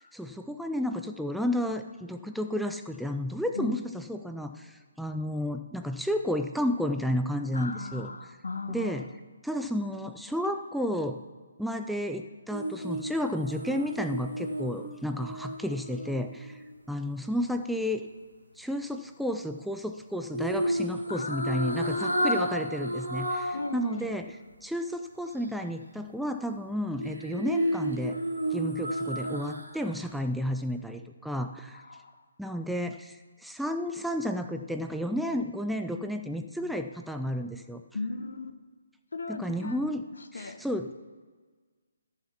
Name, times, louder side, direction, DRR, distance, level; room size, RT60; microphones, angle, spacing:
voice 1, 0.1-8.1 8.7-9.1 9.4-11.2 11.6-18.0 18.6-24.3 24.6-28.2 28.5-31.8 32.4-37.8 39.3-40.0 40.3-40.9, equal, ahead, 5 dB, 0.4 m, -32 dB
voice 2, 7.5-9.1 21.1-22.5 23.5-24.1 31.7-32.2 37.9-38.5 39.1-39.8 40.2-40.6, left 3 dB, 60° left, 9 dB, 1.1 m, -37 dB
sound 1, 12.5-16.7 20.3-23.7 24.1-24.2 27.0-29.9 30.2-30.4, right 1 dB, 70° right, 2.2 m, -32 dB
14.5 x 6.5 x 5.8 m, 1.4 s
figure-of-eight pair, 140°, 0 cm